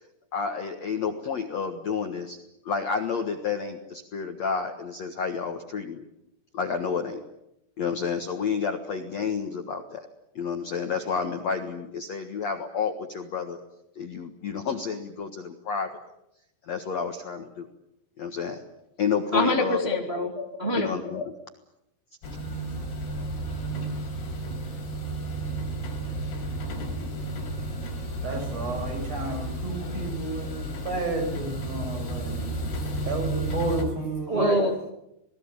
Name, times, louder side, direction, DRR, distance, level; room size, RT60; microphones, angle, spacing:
voice 1, 0.3-2.4 2.6-6.0 6.5-7.2 7.8-10.1 10.3-13.6 13.9-16.0 16.7-17.7 18.2-18.6 19.0-20.0 20.4-21.3, left 6 dB, 85° left, 5 dB, 1.5 m, -30 dB
voice 2, 19.3-20.3 20.6-20.9 34.3-34.9, equal, 75° right, 2 dB, 0.5 m, -25 dB
sound 1, 22.2-33.8, right 1 dB, 55° left, 6.3 m, -32 dB
voice 3, 28.2-32.3 33.0-34.6, right 2 dB, 30° right, 5 dB, 7.3 m, -31 dB
27.5 x 19.5 x 8.8 m, 0.84 s
omnidirectional pair, 5.8 m